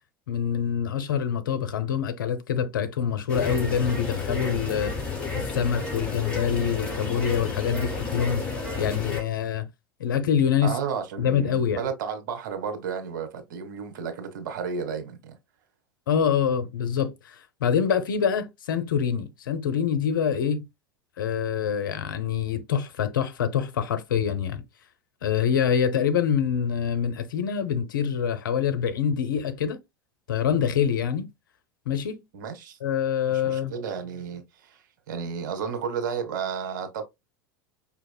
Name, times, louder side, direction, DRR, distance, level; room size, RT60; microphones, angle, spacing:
voice 1, 0.3-5.0 5.3-8.4 8.8-9.7 10.0-10.7 11.2-11.8 16.1-20.7 21.2-24.6 25.2-29.8 30.3-31.3 31.9-32.2 32.8-33.7, left 8 dB, 75° left, 0.7 m, -25 dB
sound 1, 3.3-9.2, left 4 dB, 10° left, 2.7 m, -31 dB
voice 2, 10.6-15.4 32.3-32.8 33.3-37.0, right 6 dB, 65° right, 1.0 m, -32 dB
5.2 x 2.8 x 2.2 m
figure-of-eight pair, 85°, 11 cm